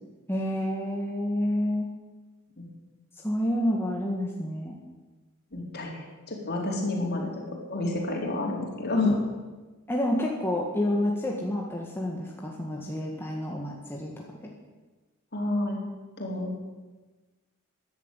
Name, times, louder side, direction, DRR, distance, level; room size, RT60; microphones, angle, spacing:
voice 1, 0.3-1.9 3.2-4.8 9.0-9.1 9.9-14.1 14.4-14.5, left 1 dB, 10° left, -2 dB, 1.7 m, -28 dB
voice 2, 5.5-7.4 7.7-9.1 15.3-15.8 16.2-16.5, left 2 dB, 45° left, 0 dB, 3.9 m, -29 dB
14.0 x 11.0 x 9.1 m, 1.2 s
head